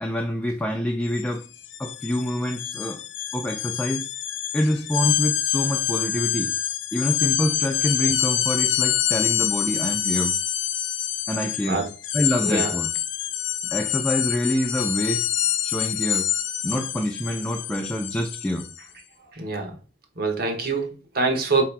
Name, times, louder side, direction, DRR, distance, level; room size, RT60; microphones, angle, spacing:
voice 1, 0.0-1.5 1.8-3.0 3.3-4.1 4.5-6.5 6.9-10.3 11.3-11.8 12.1-12.9 13.7-15.2 15.6-16.3 16.6-18.7, equal, 10° left, 0.3 m, -26 dB
sound 1, 1.1-1.2 1.5-18.8, left 10 dB, 80° left, 0.5 m, -26 dB
voice 2, 12.4-12.7 19.3-19.7 20.2-21.6, right 3 dB, 55° right, 1.1 m, -25 dB
4.8 x 2.9 x 3.3 m
head